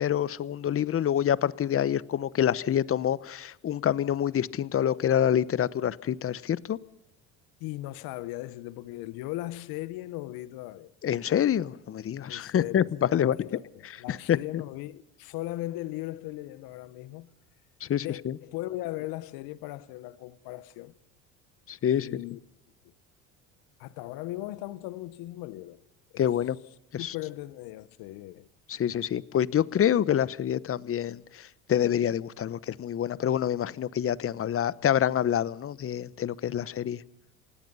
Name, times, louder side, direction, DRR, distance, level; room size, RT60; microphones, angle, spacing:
voice 1, 0.0-6.8 11.0-13.4 14.1-14.6 17.8-18.4 21.7-22.1 26.2-26.6 26.9-27.1 28.7-37.0, left 10 dB, 35° left, 1.0 m, -27 dB
voice 2, 7.6-10.9 12.3-17.3 18.0-20.9 21.9-22.4 22.8-22.9 23.8-25.8 26.1-26.3 27.0-28.5, left 17 dB, 70° left, 1.1 m, -38 dB
27.5 x 18.0 x 5.6 m
supercardioid pair, 80°, 38 cm